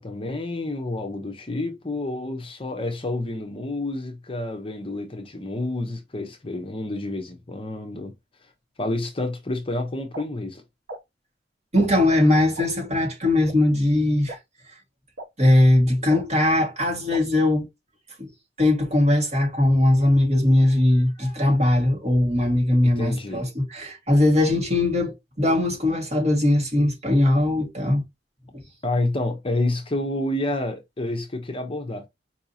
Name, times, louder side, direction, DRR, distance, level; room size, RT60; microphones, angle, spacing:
voice 1, 0.0-8.1 8.8-10.6 22.8-23.5 28.8-32.1, left 2 dB, 30° left, 0.7 m, -29 dB
sound 1, 10.1-10.2 10.9-11.0 11.7-11.9 12.6-12.7 13.5-13.6 14.3-14.4 15.2-15.3 16.1-16.2 17.1-17.2, right 1 dB, 60° right, 1.1 m, -35 dB
voice 2, 11.7-14.4 15.4-17.7 18.2-18.3 18.6-28.0 28.5-28.6, left 1 dB, 40° right, 1.7 m, -20 dB
4.7 x 2.8 x 2.6 m
head